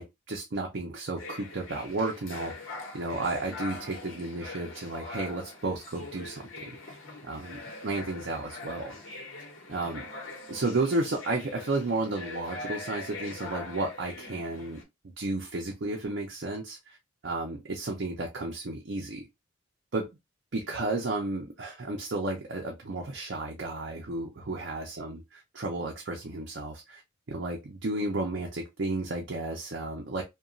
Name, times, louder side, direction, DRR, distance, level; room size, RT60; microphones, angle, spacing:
voice 1, 0.0-6.5 6.9-7.0 7.3-7.6 7.8-9.0 9.7-10.1 10.5-14.8 15.2-17.0 17.2-19.3 19.9-20.1 20.5-27.0 27.3-30.2, right 2 dB, 55° right, 0.6 m, -33 dB
sound 1, 1.2-14.8, left 3 dB, 80° left, 0.9 m, -42 dB
2.8 x 2.2 x 2.4 m
head